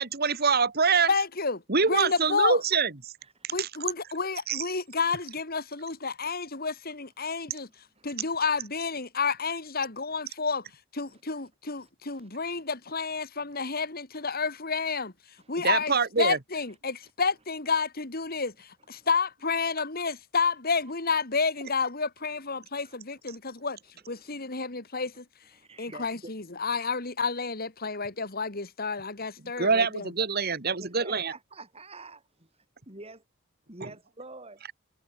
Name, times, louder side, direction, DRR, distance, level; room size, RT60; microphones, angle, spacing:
voice 1, 0.0-1.1 1.7-3.1 3.4-3.7 4.5-4.7 15.6-16.4 29.6-31.3, right 5 dB, 45° right, 2.0 m, -25 dB
voice 2, 1.1-1.6 1.9-2.6 3.5-7.7 8.0-10.6 10.9-15.1 15.5-23.8 24.1-25.2 25.8-30.1, left 4 dB, 45° left, 2.4 m, -30 dB
voice 3, 3.2-3.7 6.2-6.3 7.3-7.4 7.9-8.3 9.9-10.0 11.0-11.5 11.8-12.6 13.5-13.6 14.3-14.4 15.4-15.7 17.0-17.1 18.8-19.1 22.6-23.0 23.5-23.7 24.0-24.4 25.5-26.3 30.8-32.2 32.9-33.2 33.7-34.6, right 2 dB, 30° right, 4.9 m, -49 dB
head